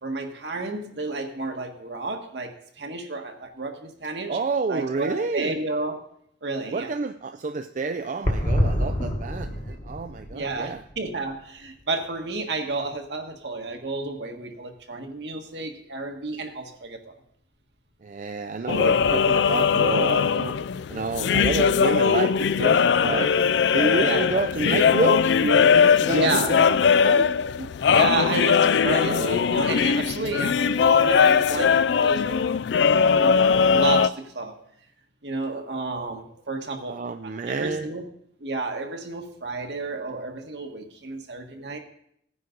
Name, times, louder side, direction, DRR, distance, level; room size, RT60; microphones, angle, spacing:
voice 1, 0.0-4.4 4.7-6.0 6.4-6.9 10.3-17.1 24.0-24.4 26.1-26.6 27.6-32.6 32.9-33.4 33.7-34.5 35.2-38.0 38.4-41.8, right 3 dB, 70° right, 1.6 m, -31 dB
voice 2, 4.3-5.6 6.7-10.8 18.0-20.6 20.9-23.3 23.7-27.3 36.9-37.9, right 4 dB, 45° right, 0.4 m, -29 dB
sound 1, 8.2-12.0 12.3-12.4 12.6-12.7, equal, 40° left, 1.3 m, -27 dB
sound 2, 18.7-34.1, left 6 dB, 75° left, 0.4 m, -20 dB
16.5 x 9.7 x 3.9 m
head